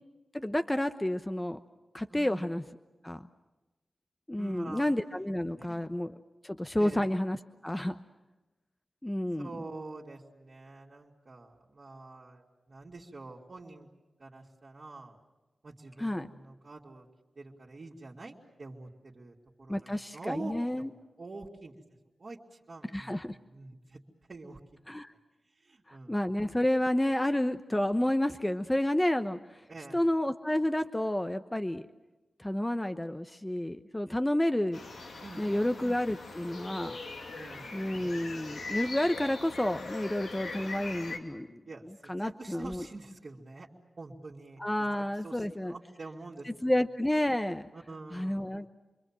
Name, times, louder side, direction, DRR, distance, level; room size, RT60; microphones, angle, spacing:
voice 1, 0.3-1.6 1.9-2.6 3.0-3.2 4.3-6.1 6.4-7.4 7.6-8.0 9.0-9.5 16.0-16.3 19.7-20.9 22.9-23.4 24.9-25.1 25.9-29.4 29.9-31.8 32.4-34.8 35.4-37.0 37.7-41.6 42.1-42.9 44.6-45.7 46.5-47.7 48.1-48.7, left 1 dB, 15° left, 8 dB, 1.0 m, -30 dB
voice 2, 2.1-2.4 4.4-4.8 5.5-5.8 6.7-7.0 9.4-13.9 14.2-15.2 15.6-17.1 17.4-20.9 21.2-21.7 22.2-24.0 24.3-24.6 25.6-26.4 29.7-30.0 35.2-35.6 37.3-37.7 41.6-43.7 44.0-44.6 44.9-46.7 47.7-48.6, right 3 dB, 55° right, -7 dB, 3.0 m, -46 dB
sound 1, 34.7-41.2, left 3 dB, 85° left, 2.9 m, -41 dB
28.5 x 22.5 x 7.7 m, 1.1 s
cardioid pair, 45°, 0 cm